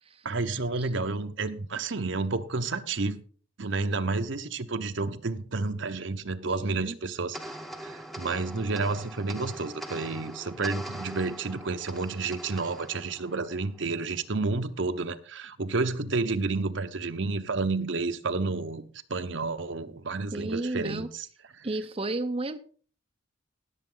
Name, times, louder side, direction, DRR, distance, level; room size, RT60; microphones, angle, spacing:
voice 1, 0.2-3.2 3.6-7.6 7.8-18.8 19.1-21.3 21.5-21.7, right 3 dB, 65° right, 0.9 m, -30 dB
voice 2, 6.4-7.0 20.3-21.1 21.6-22.6, right 2 dB, 30° right, 0.6 m, -33 dB
sound 1, 7.3-14.0, right 1 dB, ahead, 0.9 m, -42 dB
18.5 x 7.4 x 3.8 m
head